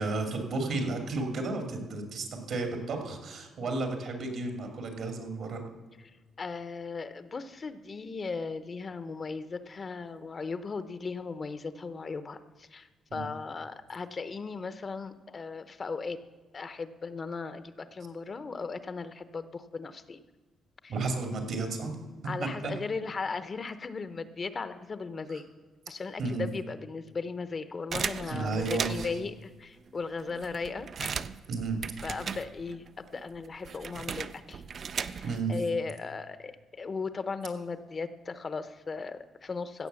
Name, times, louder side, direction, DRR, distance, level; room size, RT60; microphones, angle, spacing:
voice 1, 0.0-5.6 13.1-13.2 20.9-21.9 22.4-22.5 26.2-26.4 28.3-29.1 31.5-31.8 35.2-35.5, right 3 dB, 70° right, 4 dB, 2.7 m, -32 dB
voice 2, 6.4-16.2 16.5-20.2 20.8-20.9 22.2-25.5 25.9-31.1 32.0-34.6 34.9-39.9, left 4 dB, 35° left, 12 dB, 0.8 m, -37 dB
sound 1, 27.9-29.3 29.9-30.0 30.2-32.9 33.1-35.5, right 6 dB, 50° right, 0.4 m, -37 dB
16.0 x 6.8 x 7.0 m, 1.3 s
cardioid pair, 90°, 0 cm